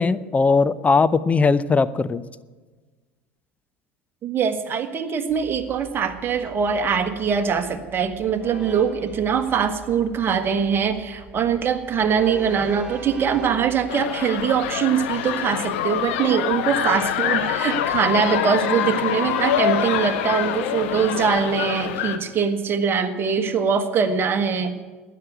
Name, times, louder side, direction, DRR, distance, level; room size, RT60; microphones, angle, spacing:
voice 1, 0.0-2.2, left 4 dB, 20° left, 14 dB, 0.5 m, -19 dB
voice 2, 4.2-24.8, right 7 dB, 35° right, 7 dB, 1.5 m, -22 dB
Train, 5.3-13.9, right 3 dB, 10° right, 2.6 m, -40 dB
sound 1, 13.9-22.2, left 10 dB, 65° left, 1.2 m, -25 dB
13.0 x 9.6 x 9.3 m, 1.3 s
figure-of-eight pair, 75°, 7 cm